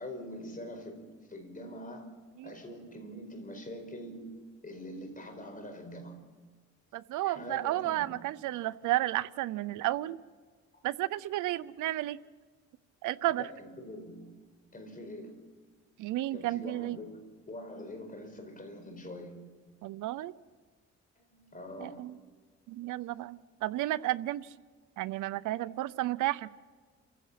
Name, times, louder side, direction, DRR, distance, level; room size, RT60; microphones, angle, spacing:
voice 1, 0.0-2.1 2.4-4.4 4.6-6.2 7.2-8.3 13.4-14.4 14.7-15.4 16.3-19.4 21.2-22.2 23.1-23.3, left 1 dB, 25° left, 6 dB, 4.9 m, -44 dB
voice 2, 6.9-10.2 10.8-12.2 13.0-13.5 16.0-17.0 19.8-20.3 21.8-22.2 22.7-24.5 25.0-26.5, right 16 dB, 85° right, 16 dB, 0.6 m, -32 dB
28.0 x 15.5 x 5.8 m, 1.5 s
cardioid pair, 90°, 30 cm